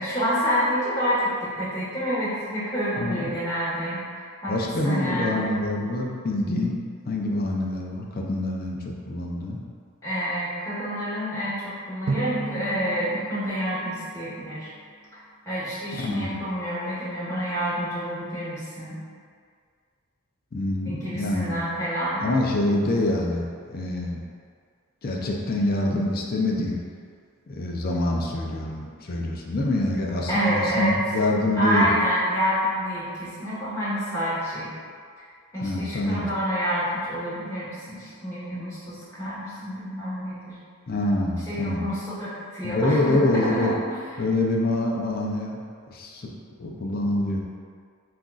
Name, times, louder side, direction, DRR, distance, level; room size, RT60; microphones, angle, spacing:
voice 1, 0.0-4.0 4.4-4.5 4.8-5.4 10.0-14.7 15.4-19.0 20.9-22.3 30.3-31.0 31.6-34.7 35.5-40.5 41.5-44.0, equal, 15° left, -11 dB, 1.3 m, -28 dB
voice 2, 3.0-3.3 4.5-6.8 7.1-8.8 9.1-9.6 15.9-16.4 20.5-21.6 22.2-24.2 25.0-26.8 27.5-31.9 35.6-36.3 40.9-41.8 42.6-43.7 44.2-45.6 45.9-46.3 46.6-47.4, left 1 dB, 40° left, -1 dB, 0.4 m, -25 dB
Drum, 12.1-14.8, right 3 dB, 55° right, 0.3 m, -33 dB
7.5 x 2.5 x 2.4 m, 2.1 s
head